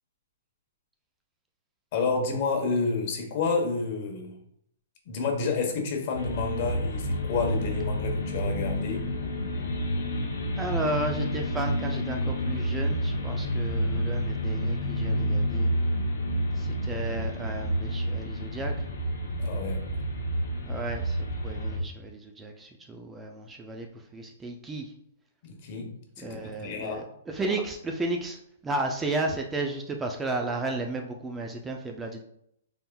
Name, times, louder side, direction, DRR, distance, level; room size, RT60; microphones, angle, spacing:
voice 1, 1.9-4.3 5.1-9.1 19.3-19.8 25.4-27.0, left 4 dB, 45° left, 2 dB, 1.0 m, -30 dB
sound 1, 6.2-21.8, equal, 75° left, 0.7 m, -29 dB
voice 2, 10.6-15.7 16.6-18.7 20.7-23.9 24.1-24.9 26.2-32.2, right 2 dB, 10° right, 3 dB, 0.4 m, -33 dB
4.1 x 3.4 x 2.3 m, 0.72 s
hypercardioid pair, 135°, 0 cm